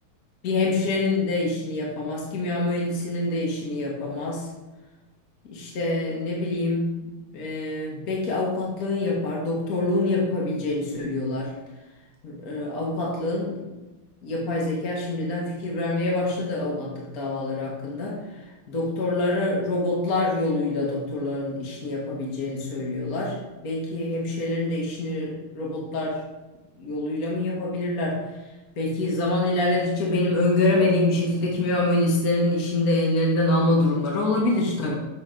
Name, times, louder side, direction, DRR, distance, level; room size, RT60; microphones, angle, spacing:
voice 1, 0.4-4.5 5.5-7.1 7.3-11.5 12.2-13.6 14.2-18.2 18.7-23.4 23.6-26.2 26.8-28.2 28.8-34.9, left 2 dB, 45° left, -3 dB, 1.6 m, -25 dB
7.4 x 4.1 x 5.1 m, 1.1 s
omnidirectional pair, 2.3 m